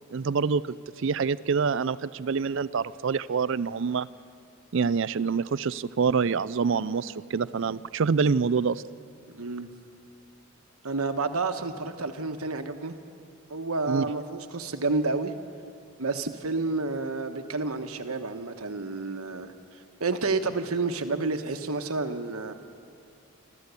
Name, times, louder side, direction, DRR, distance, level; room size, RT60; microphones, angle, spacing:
voice 1, 0.1-0.6 1.0-4.1 4.7-8.8 13.9-14.0, right 5 dB, 60° right, 18 dB, 0.4 m, -26 dB
voice 2, 9.3-9.7 10.8-13.0 13.5-15.3 16.0-19.5 20.0-22.5, right 3 dB, 90° right, 7 dB, 1.3 m, -30 dB
27.0 x 13.5 x 8.3 m, 2.5 s
head